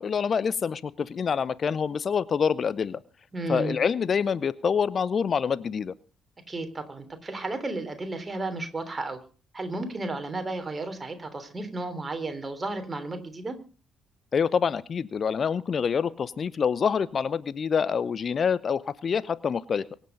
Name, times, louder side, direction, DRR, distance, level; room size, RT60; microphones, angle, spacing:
voice 1, 0.0-3.0 3.5-5.9 14.3-19.9, left 6 dB, 40° left, 18 dB, 0.6 m, -26 dB
voice 2, 3.3-3.8 6.5-9.2 9.5-13.6, right 2 dB, 25° right, 7 dB, 3.3 m, -33 dB
24.0 x 8.3 x 5.1 m, 0.37 s
figure-of-eight pair, 45°, 0 cm